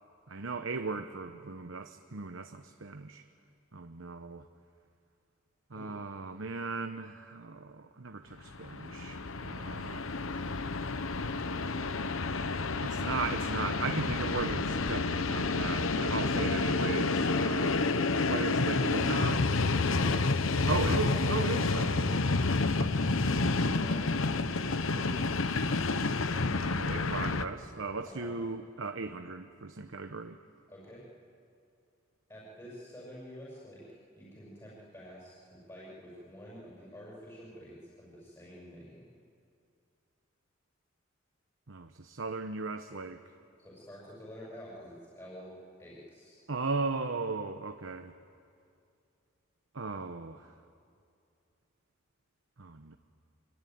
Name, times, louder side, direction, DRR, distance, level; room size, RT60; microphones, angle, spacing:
voice 1, 0.3-3.2 3.7-4.4 5.7-10.1 12.8-17.9 18.2-19.5 20.7-22.0 22.8-23.2 26.6-30.4 41.7-43.2 46.5-48.1 49.7-50.5 52.6-53.0, right 4 dB, 70° right, 7 dB, 1.0 m, -37 dB
Train, 8.5-27.5, left 3 dB, 85° left, 1.0 m, -29 dB
voice 2, 19.9-21.2 21.8-22.5 23.5-26.5 28.1-28.4 30.7-31.0 32.3-33.9 34.2-39.1 43.6-46.4, equal, 20° left, -6 dB, 7.0 m, -48 dB
25.0 x 25.0 x 9.5 m, 2.4 s
head